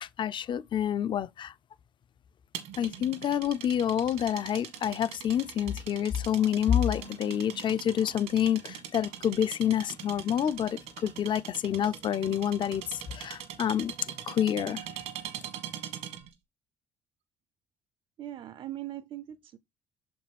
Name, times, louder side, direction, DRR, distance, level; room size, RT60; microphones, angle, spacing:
voice 1, 0.0-1.5 2.8-13.9 14.3-14.8, left 9 dB, 45° left, 0.5 m, -28 dB
sound 1, 2.5-16.3, right 10 dB, 80° right, 1.5 m, -42 dB
sound 2, 6.8-11.9, left 1 dB, 60° left, 0.8 m, -55 dB
voice 2, 18.2-19.6, right 13 dB, 50° right, 0.5 m, -40 dB
6.6 x 5.2 x 3.4 m
supercardioid pair, 70°, 11 cm